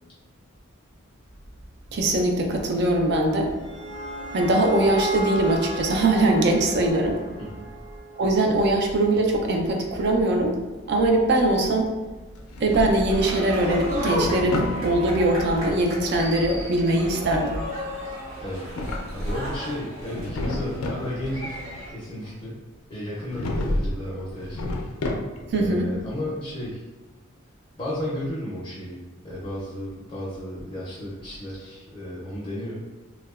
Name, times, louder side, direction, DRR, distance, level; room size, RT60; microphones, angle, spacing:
voice 1, 1.9-3.5 4.3-7.2 8.2-10.6 10.9-11.9 12.6-17.6 25.5-25.9, right 2 dB, 50° right, 2 dB, 0.3 m, -21 dB
sound 1, 3.3-8.4, equal, 25° right, 0.7 m, -35 dB
Drawer open or close, 12.4-13.3 13.8-14.8 18.4-19.6 20.0-21.1 23.3-24.0 24.3-25.6, left 1 dB, 85° left, 0.4 m, -30 dB
sound 2, 13.1-21.9, equal, 70° right, 0.9 m, -33 dB
voice 2, 19.1-21.6 21.9-22.6 22.9-24.8 25.5-26.8 27.8-29.0 29.2-32.8, left 1 dB, 25° left, -7 dB, 0.5 m, -33 dB
2.7 x 2.1 x 2.3 m, 1.2 s
head